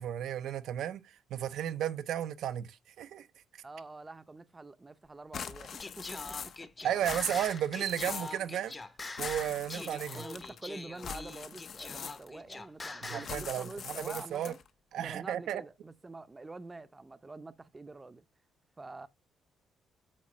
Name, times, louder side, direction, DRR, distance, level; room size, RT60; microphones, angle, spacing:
voice 1, 0.0-3.3 6.8-8.7 9.2-10.2 13.0-14.5 14.9-15.6, right 10 dB, 80° right, 0.6 m, -34 dB
voice 2, 3.6-6.9 8.4-8.6 9.8-14.6 15.0-18.3 18.8-19.1, right 3 dB, 20° right, 0.6 m, -47 dB
sound 1, 5.3-6.7 6.9-8.4 9.1-10.6 11.0-12.5 13.2-14.7, left 7 dB, 60° left, 0.7 m, -42 dB
Singing, 5.8-13.4, left 3 dB, 25° left, 0.7 m, -43 dB
8.5 x 2.9 x 6.0 m
cardioid pair, 90°, 0 cm